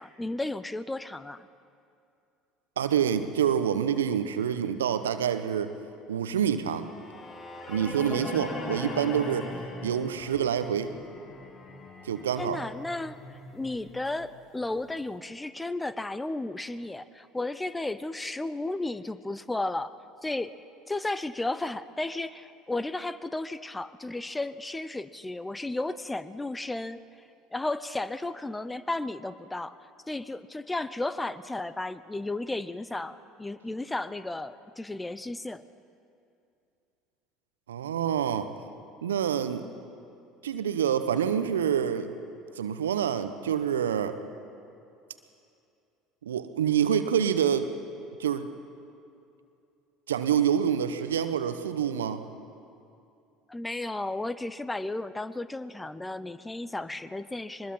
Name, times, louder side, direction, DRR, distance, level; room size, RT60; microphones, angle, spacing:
voice 1, 0.0-1.5 12.4-13.2 13.5-19.9 20.2-20.5 20.9-27.0 27.5-29.8 30.1-35.6 53.5-57.7, left 2 dB, 10° left, 15 dB, 0.8 m, -34 dB
voice 2, 2.8-5.7 6.1-6.9 7.7-9.5 9.8-10.9 12.0-12.6 37.7-38.5 39.0-39.7 40.4-42.1 42.6-44.2 46.2-47.7 48.2-48.5 50.1-52.2, right 8 dB, 80° right, 11 dB, 0.9 m, -27 dB
sound 1, 6.8-14.9, left 2 dB, 35° left, 2.5 m, -40 dB
23.0 x 21.0 x 5.6 m, 2.6 s
hypercardioid pair, 65°, 0 cm